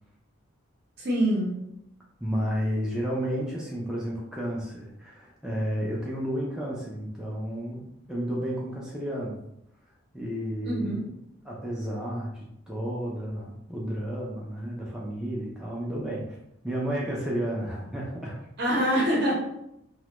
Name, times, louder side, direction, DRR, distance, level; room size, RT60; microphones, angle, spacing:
voice 1, 1.0-1.5 10.7-11.0 18.6-19.3, equal, 50° right, -3 dB, 0.7 m, -24 dB
voice 2, 2.2-9.4 10.1-11.0 11.4-16.3 16.6-18.4, equal, 5° right, -5 dB, 0.3 m, -32 dB
2.1 x 2.1 x 2.8 m, 0.81 s
head